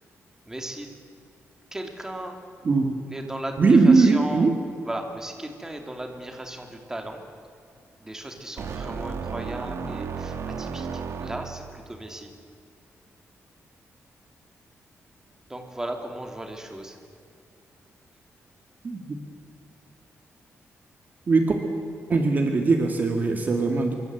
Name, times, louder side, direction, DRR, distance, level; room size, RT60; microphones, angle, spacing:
voice 1, 0.4-0.9 1.7-2.4 3.1-4.5 4.8-7.2 8.0-12.3 15.5-17.0, right 1 dB, 10° right, 4 dB, 3.0 m, -36 dB
voice 2, 3.6-4.6 18.8-19.2 21.3-21.6 22.1-23.9, right 3 dB, 35° right, 4 dB, 2.1 m, -20 dB
sound 1, 8.6-11.8, right 5 dB, 65° right, 2.0 m, -33 dB
27.0 x 24.0 x 8.0 m, 2.4 s
wide cardioid pair, 165°, 5 cm